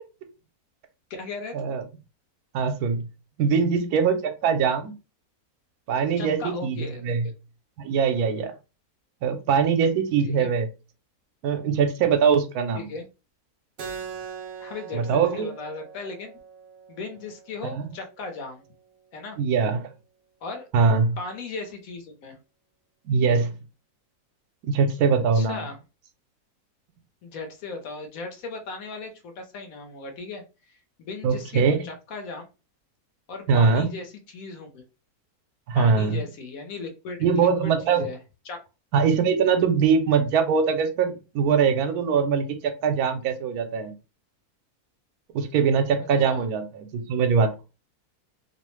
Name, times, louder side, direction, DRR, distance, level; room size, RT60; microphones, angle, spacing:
voice 1, 1.1-1.7 4.7-4.8 6.2-7.2 10.2-10.5 12.7-13.0 14.6-16.4 16.9-18.6 19.1-19.4 20.4-20.7 21.2-22.4 25.3-25.8 27.2-32.4 33.3-34.8 35.7-38.2 38.5-38.6 46.3-46.4, left 3 dB, 70° left, 1.1 m, -37 dB
voice 2, 2.5-3.0 3.4-4.9 5.9-7.2 7.8-8.5 9.2-10.7 11.4-12.8 14.9-15.5 17.6-17.9 19.4-19.8 20.7-21.2 23.1-23.5 24.6-25.6 31.2-31.8 33.5-33.9 35.7-36.2 37.2-38.1 38.9-43.9 45.3-47.6, right 6 dB, 80° right, 1.1 m, -22 dB
Keyboard (musical), 13.8-18.9, right 6 dB, 60° right, 0.8 m, -42 dB
2.8 x 2.0 x 3.0 m
omnidirectional pair, 1.6 m